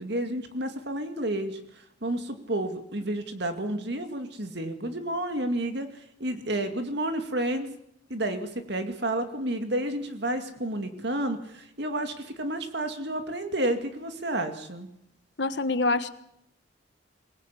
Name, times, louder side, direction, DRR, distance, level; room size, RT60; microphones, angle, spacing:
voice 1, 0.0-1.6 2.0-7.7 8.1-14.9, right 1 dB, 60° right, 7 dB, 2.4 m, -30 dB
voice 2, 15.4-16.1, left 3 dB, 60° left, 11 dB, 1.4 m, -25 dB
23.5 x 19.5 x 8.5 m, 0.76 s
head